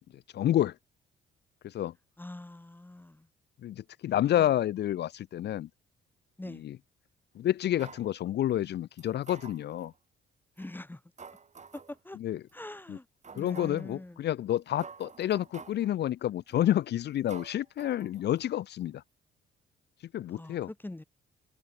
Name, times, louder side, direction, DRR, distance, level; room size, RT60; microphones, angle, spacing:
voice 1, 0.1-0.8 1.6-1.9 3.6-5.7 6.5-6.8 7.3-9.9 12.2-12.4 12.9-13.0 13.3-19.0 20.1-20.7, left 12 dB, 60° left, 0.5 m, -29 dB
voice 2, 2.2-3.3 6.4-6.6 10.6-11.0 11.7-12.2 12.5-13.1 13.3-14.3 20.3-21.0, left 1 dB, 10° left, 1.2 m, -43 dB
sound 1, 7.8-8.1 9.0-10.0 10.6-10.7 11.2-12.0 12.5-12.6 13.2-13.9 14.5-14.6 14.8-15.9 16.5-16.8 17.3-18.5 18.8-18.9, right 5 dB, 35° right, 3.7 m, -49 dB
cardioid pair, 90°, 20 cm